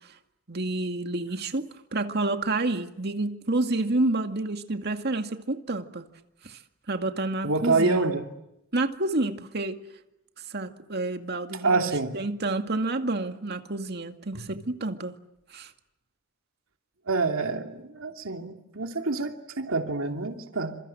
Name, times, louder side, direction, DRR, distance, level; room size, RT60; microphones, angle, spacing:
voice 1, 0.5-6.1 6.4-6.6 6.9-8.1 8.7-9.8 10.5-15.1 15.5-15.7, right 2 dB, 55° right, 6 dB, 2.2 m, -29 dB
voice 2, 7.4-8.2 11.6-12.1 14.3-14.5 17.1-20.8, right 3 dB, 80° right, 4 dB, 2.8 m, -27 dB
28.5 x 26.5 x 7.8 m, 0.85 s
head